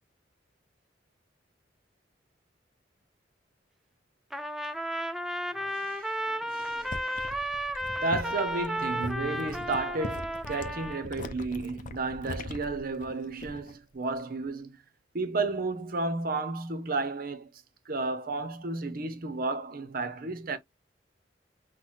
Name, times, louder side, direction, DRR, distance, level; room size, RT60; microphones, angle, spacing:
Trumpet, 4.3-11.1, equal, ahead, 0.4 m, -33 dB
voice 1, 5.5-7.4 8.0-14.7 15.1-17.5 17.9-20.6, right 3 dB, 55° right, 0.8 m, -33 dB
sound 1, 6.7-13.8 14.1-14.5, left 2 dB, 45° left, 0.6 m, -41 dB
5.9 x 2.2 x 3.1 m
head